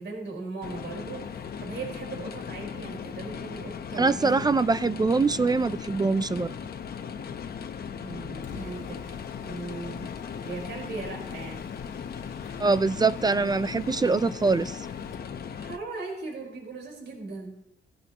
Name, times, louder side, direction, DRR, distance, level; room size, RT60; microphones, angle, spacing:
voice 1, 0.0-4.5 8.0-10.1 10.4-11.6 15.5-17.6, right 3 dB, 60° right, -1 dB, 4.7 m, -38 dB
sound 1, 0.6-15.8, left 7 dB, 50° left, 1.0 m, -38 dB
voice 2, 4.0-6.5 12.6-14.8, right 4 dB, 20° right, 15 dB, 0.4 m, -23 dB
Mechanisms, 8.1-15.4, left 6 dB, 85° left, 1.9 m, -49 dB
17.0 x 16.5 x 3.0 m, 0.78 s
cardioid pair, 90°, 20 cm